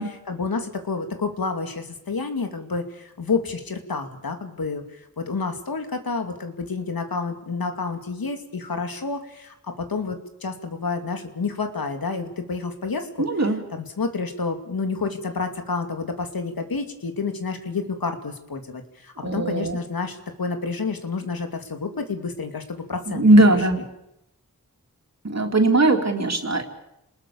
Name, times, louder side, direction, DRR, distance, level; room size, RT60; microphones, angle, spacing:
voice 1, 0.3-13.1 13.7-23.2, left 4 dB, 85° left, 6 dB, 2.7 m, -29 dB
voice 2, 13.2-13.6 19.2-19.8 23.1-23.8 25.2-26.6, right 2 dB, 50° right, 4 dB, 3.6 m, -19 dB
29.0 x 20.0 x 7.1 m, 0.85 s
wide cardioid pair, 50°, 35 cm